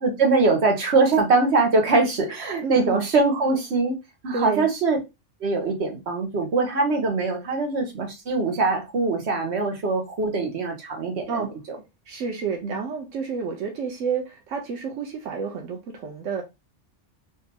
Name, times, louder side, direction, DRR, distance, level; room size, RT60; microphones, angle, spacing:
voice 1, 0.0-3.9 4.2-5.0 5.4-11.3 12.6-12.7, right 3 dB, 60° right, 1.3 m, -22 dB
voice 2, 2.6-3.1 4.3-4.7 11.3-11.5 12.1-16.4, right 5 dB, 85° right, 1.1 m, -30 dB
3.7 x 2.6 x 2.8 m
omnidirectional pair, 1.3 m